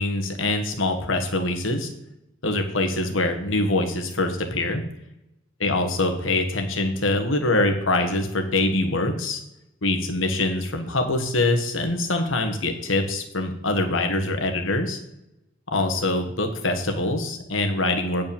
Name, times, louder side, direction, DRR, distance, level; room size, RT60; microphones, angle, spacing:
voice 1, 0.0-1.9 2.4-4.8 5.6-9.4 9.8-15.0 15.7-18.2, left 2 dB, 85° left, 5 dB, 1.6 m, -24 dB
9.1 x 5.2 x 7.1 m, 0.84 s
head